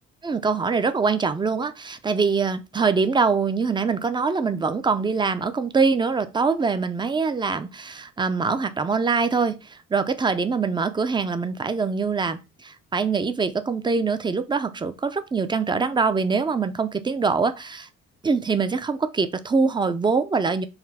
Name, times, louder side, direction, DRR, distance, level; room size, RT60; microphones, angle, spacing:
voice 1, 0.2-17.9 18.2-20.7, right 4 dB, 15° right, 0.4 m, -24 dB
4.1 x 2.3 x 4.1 m
cardioid pair, 90°, 30 cm